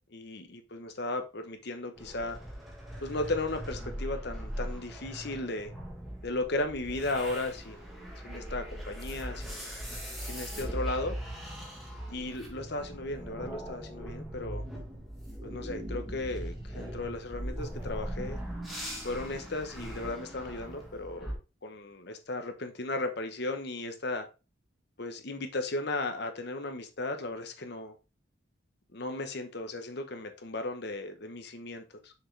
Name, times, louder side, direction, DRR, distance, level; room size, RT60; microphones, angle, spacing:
voice 1, 0.1-2.4 3.0-5.7 6.2-7.9 8.2-9.6 10.3-11.2 12.1-14.6 15.4-18.4 19.0-24.3 25.0-27.9 28.9-32.1, left 2 dB, 55° left, 1.0 m, -35 dB
sound 1, 2.0-21.3, equal, ahead, 1.5 m, -40 dB
6.3 x 4.7 x 3.3 m
head